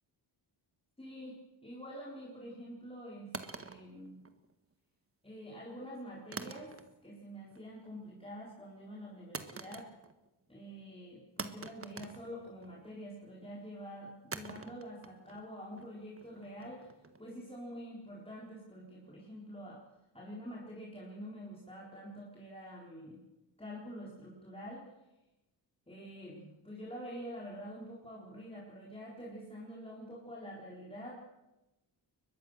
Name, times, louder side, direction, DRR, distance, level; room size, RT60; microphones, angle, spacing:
voice 1, 1.0-4.2 5.2-6.8 7.0-9.9 10.5-16.9 17.2-19.8 20.1-23.2 23.6-24.9 25.9-31.2, equal, 10° left, -4 dB, 4.3 m, -47 dB
sound 1, 3.3-4.7 6.3-7.2 7.5-7.9 9.3-10.3 10.6-10.7 11.4-12.9 14.3-17.3, right 4 dB, 30° right, 1.6 m, -46 dB
22.5 x 21.0 x 6.6 m, 0.97 s
wide cardioid pair, 120°, 47 cm